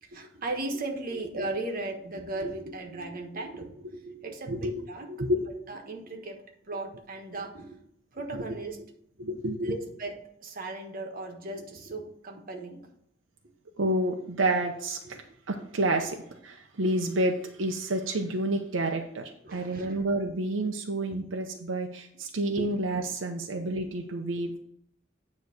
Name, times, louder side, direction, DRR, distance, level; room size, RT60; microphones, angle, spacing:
voice 1, 0.0-5.1 5.7-6.4 6.6-7.8 8.1-8.8 9.6-12.8 19.4-20.3 21.1-21.2 22.6-22.7 23.8-23.9, right 2 dB, 50° right, 2 dB, 1.3 m, -37 dB
voice 2, 4.5-4.8 5.1-5.4 8.3-8.4 9.2-9.8 13.8-15.2 15.5-16.2 16.4-24.6, right 1 dB, 85° right, 3 dB, 0.8 m, -29 dB
9.4 x 3.2 x 6.4 m, 0.73 s
head